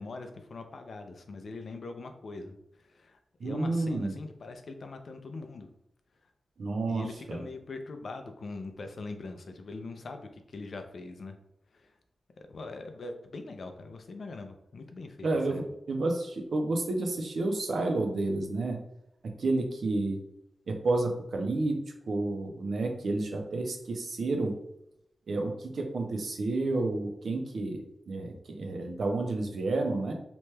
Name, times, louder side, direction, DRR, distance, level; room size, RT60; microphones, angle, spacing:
voice 1, 0.0-5.7 6.9-11.4 11.7-11.9 12.4-15.7, left 3 dB, 65° left, 6 dB, 0.4 m, -42 dB
voice 2, 3.4-4.1 6.6-7.0 7.3-7.4 15.2-18.8 19.4-20.2 20.7-21.8 22.1-24.6 25.3-30.1, right 2 dB, 75° right, 3 dB, 0.5 m, -30 dB
2.9 x 2.2 x 3.2 m, 0.79 s
wide cardioid pair, 100°, 0 cm